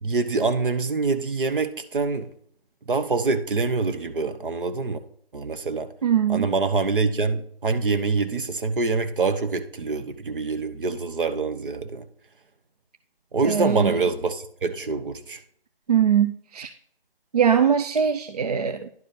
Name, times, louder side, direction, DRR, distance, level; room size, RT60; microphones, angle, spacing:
voice 1, 0.0-2.3 2.9-5.0 5.3-5.9 6.3-12.0 13.3-15.4, right 4 dB, 60° right, 1.1 m, -25 dB
voice 2, 6.0-6.5 13.4-13.9 15.9-16.7 17.3-18.9, right 8 dB, 40° right, 0.4 m, -21 dB
11.0 x 4.8 x 4.1 m
figure-of-eight pair, 150°, 30 cm